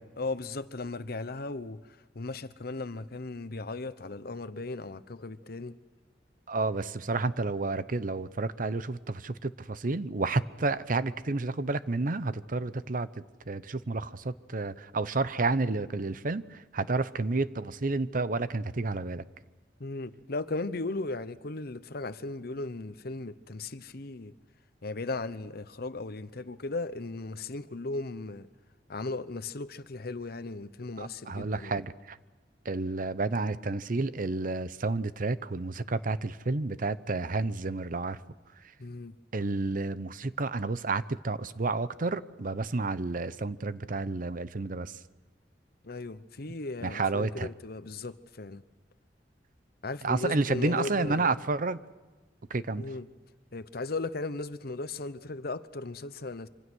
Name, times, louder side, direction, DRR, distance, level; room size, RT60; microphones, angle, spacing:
voice 1, 0.0-1.8 2.1-5.8 19.8-24.3 24.8-28.5 28.9-31.8 38.8-39.2 45.8-48.6 49.8-51.3 52.8-53.1 53.5-56.5, left 3 dB, 60° left, 0.9 m, -37 dB
voice 2, 6.5-13.1 13.5-19.2 31.0-32.2 32.6-38.2 39.3-45.0 46.8-47.5 50.0-51.8 52.5-52.8, right 3 dB, 50° right, 0.8 m, -30 dB
26.0 x 25.0 x 6.3 m
head